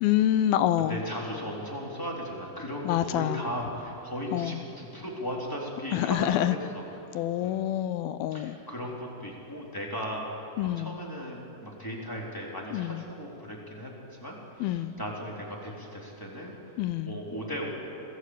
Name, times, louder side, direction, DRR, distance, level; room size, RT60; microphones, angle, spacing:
voice 1, 0.0-1.0 2.9-3.4 4.3-4.6 5.9-6.5 7.2-8.6 10.6-11.0 12.7-13.0 14.6-14.9 16.8-17.2, left 12 dB, 85° left, 13 dB, 2.6 m, -27 dB
voice 2, 0.8-6.8 7.1-7.5 8.3-10.2 10.6-16.6 17.1-17.8, equal, 5° left, -3 dB, 3.6 m, -37 dB
26.5 x 18.5 x 8.3 m, 2.9 s
omnidirectional pair, 4.2 m